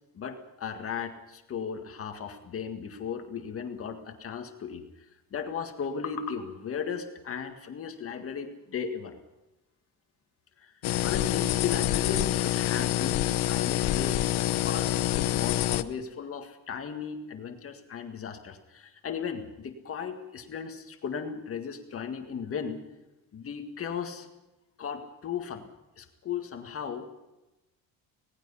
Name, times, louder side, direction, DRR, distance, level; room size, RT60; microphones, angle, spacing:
voice 1, 0.1-4.8 5.3-9.1 10.6-10.7 11.0-22.8 23.3-24.3 24.8-25.7 26.0-27.1, left 6 dB, 35° left, 5 dB, 1.9 m, -36 dB
sound 1, 10.8-15.8, left 14 dB, 80° left, 1.0 m, -27 dB
26.0 x 18.5 x 5.6 m, 1.0 s
cardioid pair, 170°, 37 cm